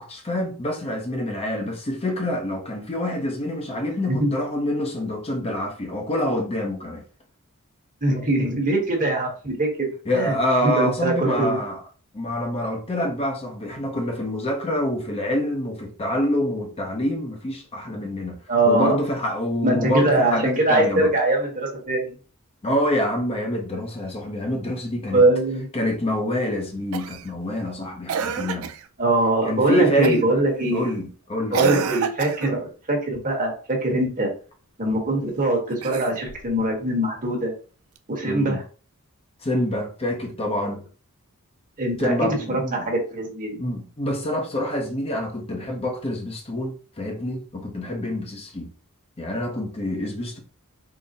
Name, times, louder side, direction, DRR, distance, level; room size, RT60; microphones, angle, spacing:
voice 1, 0.0-7.0 10.1-11.8 12.1-18.4 18.6-21.1 22.6-25.3 25.7-28.7 29.4-30.3 30.7-31.8 38.2-38.6 39.4-40.9 42.0-42.9 43.6-48.7 49.2-50.4, left 1 dB, 25° left, 0.6 m, -26 dB
voice 2, 8.0-9.9 10.1-10.3 10.6-11.6 18.5-18.9 19.6-22.1 25.1-25.7 29.0-30.9 31.5-34.3 34.8-37.5 38.1-38.6 41.8-43.6, right 2 dB, 40° right, 1.2 m, -22 dB
Cough, 26.9-27.3 28.1-28.9 30.0-30.4 31.5-32.6 35.7-36.5 38.0-38.1, right 7 dB, 65° right, 0.4 m, -27 dB
3.8 x 2.1 x 4.0 m
head